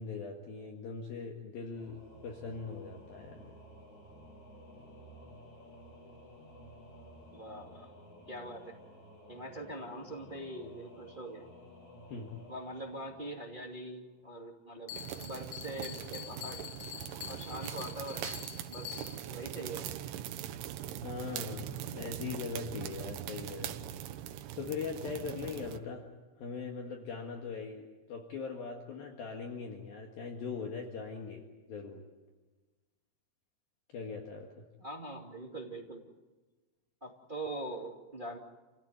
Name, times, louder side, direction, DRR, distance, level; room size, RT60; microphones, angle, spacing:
voice 1, 0.0-3.5 12.1-12.3 21.0-24.0 24.2-26.1 26.4-32.0 33.9-34.6, left 5 dB, 60° left, 2 dB, 3.3 m, -41 dB
Singing / Musical instrument, 1.7-14.3, equal, 40° left, 4.8 m, -54 dB
voice 2, 7.3-7.9 8.3-8.8 9.3-11.4 12.5-14.9 15.2-16.6 17.3-18.4 18.7-19.9 34.8-36.0 37.0-38.4, right 1 dB, 20° right, 1 dB, 1.4 m, -43 dB
Bell, 14.9-19.4, left 13 dB, 80° left, 3.2 m, -46 dB
sound 1, 14.9-25.8, right 11 dB, 85° right, 3.6 m, -41 dB
29.5 x 16.5 x 9.6 m, 1.3 s
omnidirectional pair, 5.4 m